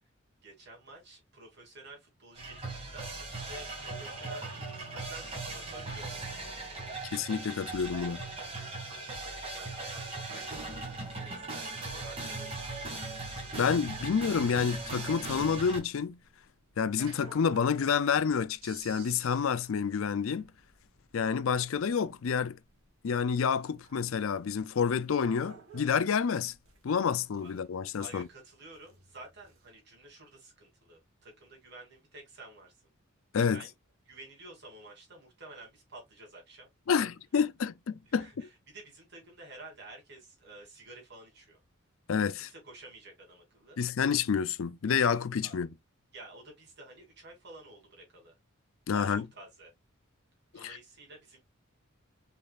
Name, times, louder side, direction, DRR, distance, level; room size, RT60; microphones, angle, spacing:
voice 1, 0.4-6.5 9.2-10.2 10.7-13.1 27.4-27.7 28.0-32.7 33.5-33.7 34.1-36.7 38.1-41.6 42.3-43.8 45.4-45.6 46.1-48.3 48.9-49.7 50.5-51.4, right 2 dB, 55° right, 2.9 m, -51 dB
sound 1, 2.4-15.8, right 2 dB, 25° right, 2.0 m, -39 dB
voice 2, 7.1-8.2 13.6-16.2 16.8-20.5 21.1-22.6 23.0-26.5 26.8-28.3 33.3-33.6 36.9-38.3 42.1-42.5 43.8-45.7 48.9-49.2 50.5-50.8, left 6 dB, 70° left, 0.4 m, -29 dB
sound 2, 10.1-29.7, right 6 dB, 75° right, 1.8 m, -56 dB
5.3 x 4.0 x 2.4 m
head